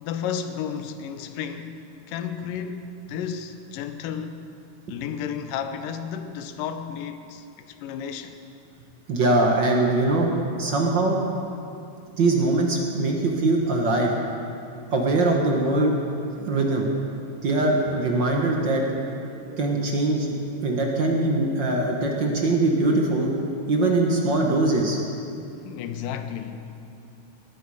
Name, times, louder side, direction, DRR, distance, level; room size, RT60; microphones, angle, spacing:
voice 1, 0.0-1.8 2.1-4.4 4.9-7.5 7.8-8.4 25.7-26.7, left 8 dB, 80° left, 2.4 m, -32 dB
voice 2, 9.1-11.2 12.2-14.1 14.9-15.9 16.5-16.9 17.4-18.8 19.6-20.3 20.6-23.3 23.7-25.0, right 2 dB, 55° right, 1.3 m, -22 dB
sound 1, 16.4-21.5, right 3 dB, 80° right, 2.8 m, -42 dB
19.0 x 12.5 x 4.9 m
omnidirectional pair, 3.9 m